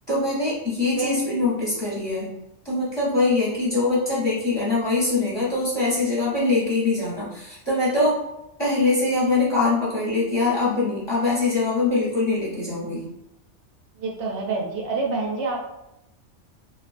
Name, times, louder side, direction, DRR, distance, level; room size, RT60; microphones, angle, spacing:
voice 1, 0.1-2.3 2.6-8.2 8.6-13.0, left 3 dB, 25° left, -7 dB, 0.7 m, -23 dB
voice 2, 14.0-15.6, right 3 dB, 75° right, -1 dB, 0.8 m, -27 dB
2.3 x 2.3 x 2.4 m, 0.85 s
omnidirectional pair, 1.2 m